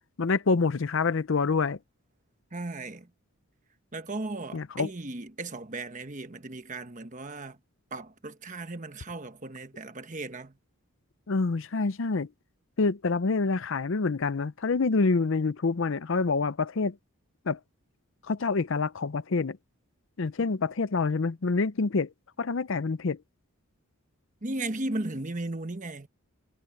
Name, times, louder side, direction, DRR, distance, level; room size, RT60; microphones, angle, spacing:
voice 1, 0.2-1.8 4.5-4.9 11.3-12.3 12.8-17.0 17.5-17.6 18.3-19.6 20.2-22.1 22.4-23.2, left 4 dB, 55° left, 0.5 m, -27 dB
voice 2, 2.5-3.1 3.9-7.6 7.9-10.6 20.4-20.5 24.4-26.1, right 2 dB, 35° right, 1.2 m, -36 dB
head